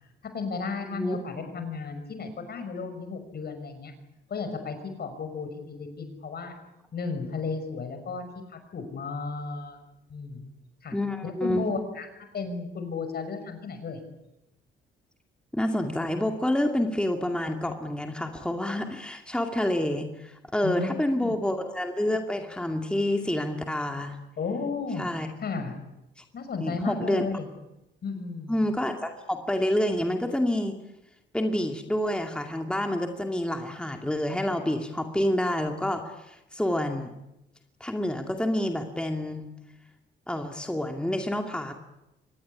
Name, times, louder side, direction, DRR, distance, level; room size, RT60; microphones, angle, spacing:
voice 1, 0.3-3.9 4.3-6.5 6.9-9.8 10.1-10.5 10.8-11.0 11.2-12.1 12.3-14.0 20.6-21.0 21.2-21.4 24.4-25.1 25.4-25.7 26.3-27.5 28.0-28.6, left 4 dB, 55° left, 8 dB, 6.1 m, -34 dB
voice 2, 0.8-1.2 10.9-11.6 15.5-24.2 25.0-25.3 26.2-26.3 26.6-27.2 28.5-30.7 31.3-37.1 37.8-39.5 40.3-41.7, left 1 dB, 5° left, 4 dB, 2.4 m, -28 dB
25.0 x 19.5 x 9.8 m, 0.93 s
cardioid pair, 90°, 20 cm